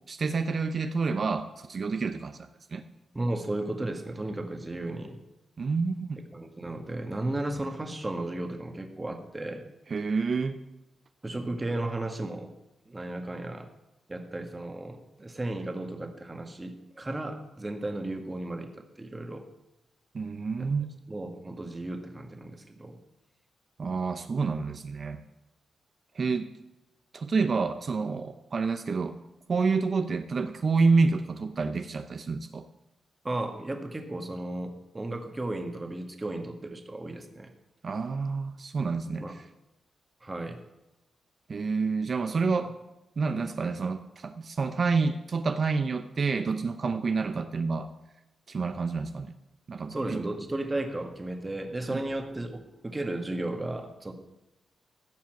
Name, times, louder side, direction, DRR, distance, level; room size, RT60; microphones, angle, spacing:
voice 1, 0.1-2.8 5.6-6.2 9.9-10.6 20.1-20.9 23.8-25.2 26.1-26.5 27.1-29.2 29.5-32.7 37.8-39.4 41.5-42.8 43.2-47.9 48.5-49.3 49.7-50.2 51.9-52.0, right 4 dB, 45° right, 9 dB, 0.7 m, -28 dB
voice 2, 3.1-5.2 6.1-9.6 11.2-12.5 12.8-13.7 14.1-18.7 19.0-19.4 20.6-20.7 21.1-23.0 33.2-37.5 39.2-39.4 40.2-40.6 49.9-54.1, right 2 dB, 20° right, 6 dB, 1.7 m, -34 dB
15.0 x 5.7 x 7.5 m, 0.98 s
cardioid pair, 100°, 0 cm